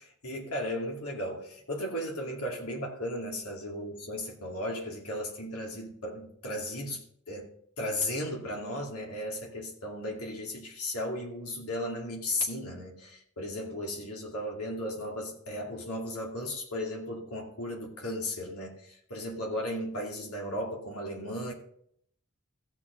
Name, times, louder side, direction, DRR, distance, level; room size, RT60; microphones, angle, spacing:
voice 1, 0.0-7.0 7.3-7.5 7.8-21.5, left 1 dB, 85° left, -1 dB, 2.4 m, -35 dB
16.0 x 6.0 x 3.9 m, 0.66 s
head